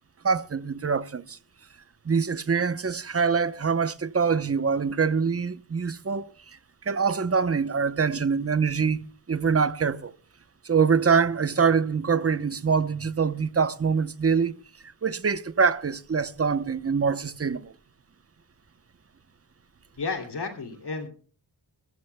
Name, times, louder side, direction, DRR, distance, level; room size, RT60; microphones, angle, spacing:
voice 1, 0.2-1.4 2.0-6.3 6.9-10.1 10.6-14.5 15.0-17.7, right 5 dB, 30° right, 0.9 m, -24 dB
voice 2, 20.0-21.1, left 4 dB, 55° left, 2.9 m, -32 dB
22.5 x 14.5 x 2.3 m
wide cardioid pair, 90°, 46 cm